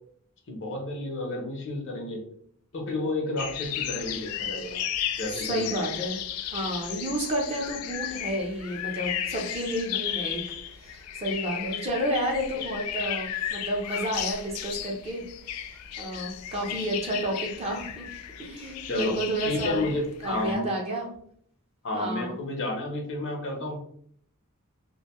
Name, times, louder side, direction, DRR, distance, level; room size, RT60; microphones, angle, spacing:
voice 1, 0.5-2.3 2.7-4.8 5.2-5.8 18.8-19.1 19.5-20.7 21.8-23.8, left 2 dB, 60° left, 1 dB, 0.7 m, -31 dB
sound 1, 3.4-20.5, left 10 dB, 90° left, 0.3 m, -34 dB
voice 2, 5.3-6.2 6.5-15.2 15.5-18.1 18.4-19.8 20.2-21.1 21.9-22.4, right 1 dB, 30° right, -1 dB, 0.6 m, -31 dB
2.6 x 2.2 x 2.9 m, 0.64 s
head